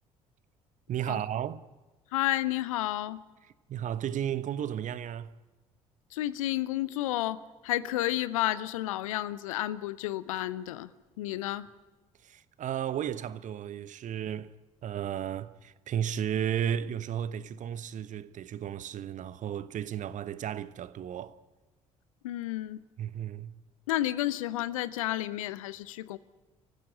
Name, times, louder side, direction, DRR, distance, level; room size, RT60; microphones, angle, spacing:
voice 1, 0.9-1.6 3.4-5.4 12.2-14.5 14.8-21.4 23.0-23.6, right 9 dB, 45° right, 1.0 m, -34 dB
voice 2, 2.1-3.2 6.1-10.9 11.2-11.7 22.2-22.8 23.9-26.2, left 14 dB, 75° left, 0.8 m, -31 dB
29.0 x 15.0 x 9.7 m
figure-of-eight pair, 50°, 17 cm